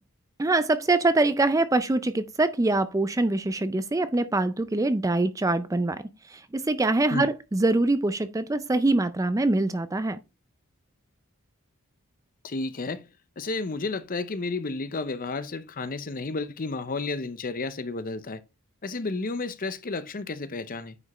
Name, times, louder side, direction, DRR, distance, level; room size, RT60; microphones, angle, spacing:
voice 1, 0.4-10.2, right 2 dB, 15° right, 0.4 m, -24 dB
voice 2, 12.4-13.1 13.4-18.4 18.8-21.0, left 3 dB, 40° left, 0.7 m, -32 dB
9.5 x 5.2 x 3.1 m
head